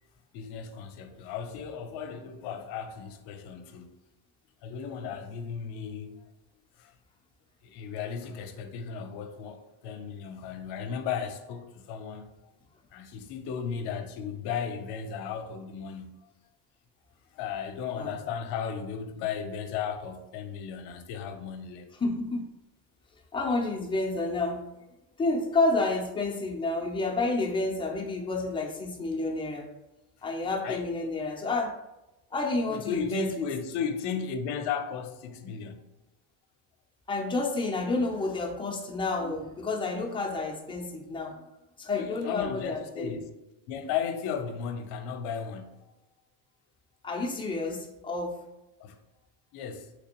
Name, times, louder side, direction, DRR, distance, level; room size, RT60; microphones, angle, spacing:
voice 1, 0.3-3.9 4.6-6.2 6.8-6.9 7.6-12.5 12.9-16.3 17.3-21.9 30.6-30.9 32.7-35.9 42.0-43.3 43.7-45.9 48.8-49.0 49.5-49.9, left 6 dB, 65° left, 0.6 m, -35 dB
voice 2, 22.0-22.4 23.3-24.6 25.2-29.7 30.2-31.8 32.3-33.5 37.1-41.4 41.8-43.2 47.0-48.4, left 3 dB, 10° left, 0.4 m, -30 dB
3.3 x 3.3 x 2.8 m
cardioid pair, 130°, 44 cm